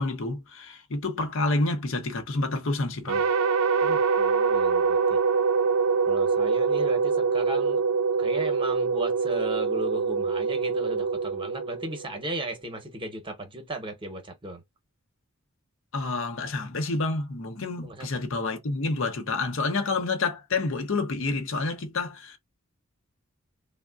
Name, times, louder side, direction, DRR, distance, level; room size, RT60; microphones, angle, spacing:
voice 1, 0.0-3.2 15.9-22.4, left 3 dB, 65° left, 0.8 m, -28 dB
sound 1, 3.1-12.4, right 5 dB, 75° right, 0.6 m, -24 dB
voice 2, 3.8-5.2 6.1-7.8 8.2-14.6 17.8-18.2, right 1 dB, 25° right, 0.9 m, -36 dB
3.5 x 2.1 x 2.3 m
head